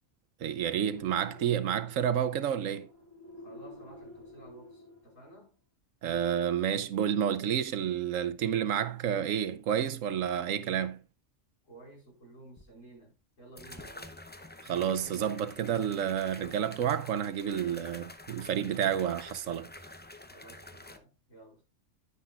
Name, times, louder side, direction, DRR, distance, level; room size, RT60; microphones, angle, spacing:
voice 1, 0.4-2.9 6.0-11.0 14.6-19.7, right 9 dB, 85° right, 1.1 m, -30 dB
sound 1, 0.8-5.4, left 1 dB, 35° right, 4.8 m, -51 dB
voice 2, 3.4-5.6 11.6-14.2 20.3-21.6, right 2 dB, 90° left, 5.1 m, -53 dB
sound 2, 12.6-12.7 13.6-21.0, left 2 dB, 15° left, 0.4 m, -48 dB
10.0 x 9.8 x 2.4 m
omnidirectional pair, 1.3 m